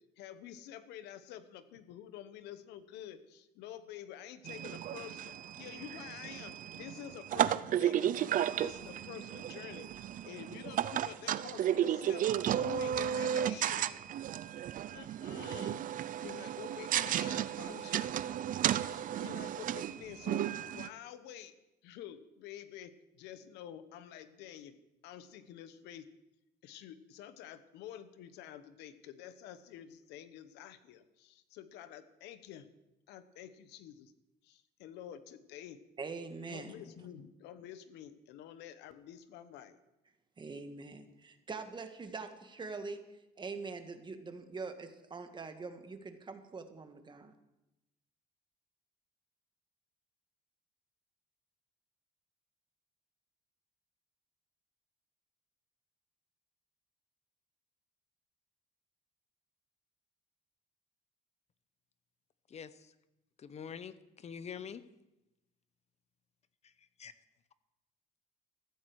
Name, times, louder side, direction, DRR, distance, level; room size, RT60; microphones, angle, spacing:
voice 1, 0.2-12.3 12.6-13.9 14.9-18.1 18.8-21.5 21.8-24.7 25.0-26.1 26.6-32.7 33.1-34.1 34.4-35.8 36.5-39.8, left 10 dB, 90° left, 12 dB, 1.0 m, -49 dB
sound 1, 4.5-20.9, right 10 dB, 50° right, 0.5 m, -34 dB
voice 2, 36.0-36.7 40.4-43.1 43.4-47.3, right 4 dB, 25° right, 7 dB, 1.6 m, -43 dB
voice 3, 62.5-62.9 63.4-64.8 67.0-67.1, left 7 dB, 40° left, 14 dB, 0.9 m, -45 dB
14.5 x 14.0 x 4.7 m, 0.94 s
cardioid pair, 110°, 17 cm